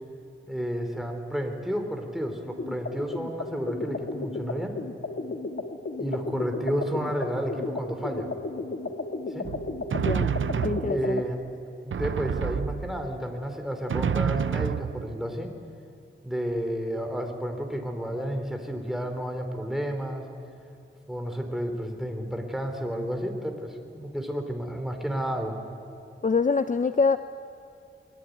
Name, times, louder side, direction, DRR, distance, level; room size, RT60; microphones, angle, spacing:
voice 1, 0.5-4.7 6.0-8.3 9.3-9.5 10.9-11.5 11.8-15.5 16.2-20.2 21.1-25.6, equal, ahead, 4 dB, 3.5 m, -31 dB
sound 1, 2.6-11.3, left 3 dB, 75° left, 1.7 m, -34 dB
Drum, 9.4-11.3 11.9-13.2 13.9-15.4, right 7 dB, 70° right, 0.5 m, -29 dB
voice 2, 10.0-10.3 10.6-11.2 26.2-27.2, left 4 dB, 40° left, 10 dB, 0.6 m, -24 dB
24.0 x 22.0 x 9.4 m, 2.6 s
wide cardioid pair, 85°, 21 cm